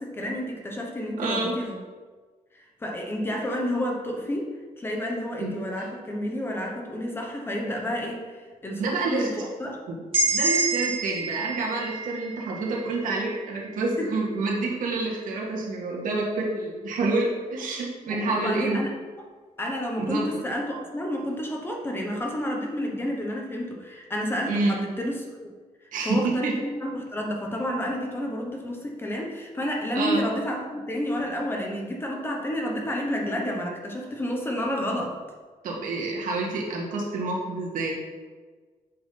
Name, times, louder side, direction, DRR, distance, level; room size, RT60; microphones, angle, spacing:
voice 1, 0.0-1.8 2.8-4.5 4.8-9.8 14.0-14.1 18.1-18.9 19.2-19.3 19.6-25.2 25.8-35.2, equal, 15° left, 0 dB, 1.0 m, -30 dB
voice 2, 1.2-1.5 5.4-5.5 8.8-9.3 9.9-10.0 10.3-18.9 20.0-20.3 24.5-24.7 25.9-26.5 29.9-30.2 35.6-37.9, right 3 dB, 75° right, -2 dB, 1.9 m, -28 dB
sound 1, 10.1-13.9, right 3 dB, 45° right, 2.4 m, -28 dB
7.6 x 3.9 x 5.8 m, 1.4 s
wide cardioid pair, 165°, 14 cm